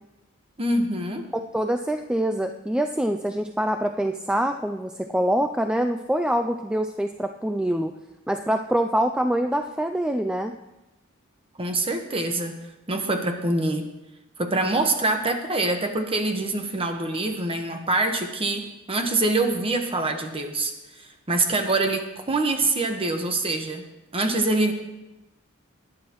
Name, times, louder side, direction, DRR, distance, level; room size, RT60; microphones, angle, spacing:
voice 1, 0.6-1.3 11.6-12.5 12.9-13.8 14.4-23.8 24.1-24.7, right 2 dB, 25° right, 5 dB, 1.2 m, -25 dB
voice 2, 1.5-7.9 8.3-10.5, right 1 dB, 5° right, 5 dB, 0.3 m, -25 dB
18.5 x 10.5 x 3.0 m, 1.0 s
head